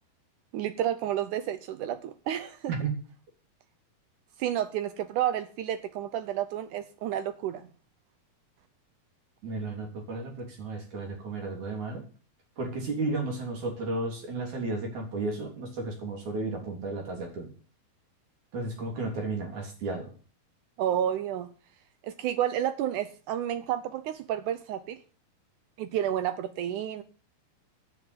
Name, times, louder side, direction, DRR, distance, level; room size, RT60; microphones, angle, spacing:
voice 1, 0.5-2.7 4.4-7.7 20.8-21.5 22.0-25.0 25.8-27.0, right 11 dB, 80° right, 1.8 m, -30 dB
voice 2, 9.4-12.0 12.6-17.5 18.5-20.1, right 3 dB, 50° right, 4.5 m, -33 dB
9.4 x 8.6 x 8.3 m
omnidirectional pair, 4.4 m